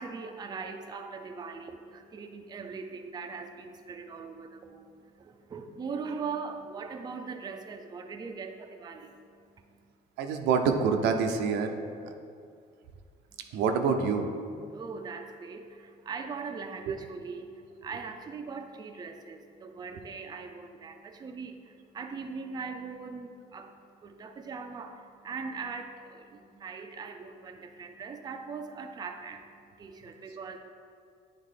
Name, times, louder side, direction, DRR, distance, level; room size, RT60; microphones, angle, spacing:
voice 1, 0.0-9.1 14.5-30.6, right 5 dB, 25° right, 6 dB, 0.4 m, -40 dB
voice 2, 10.2-11.7 13.5-14.3 16.9-17.0, right 5 dB, 85° right, 5 dB, 0.6 m, -26 dB
8.4 x 3.6 x 3.7 m, 2.3 s
cardioid pair, 110°, 17 cm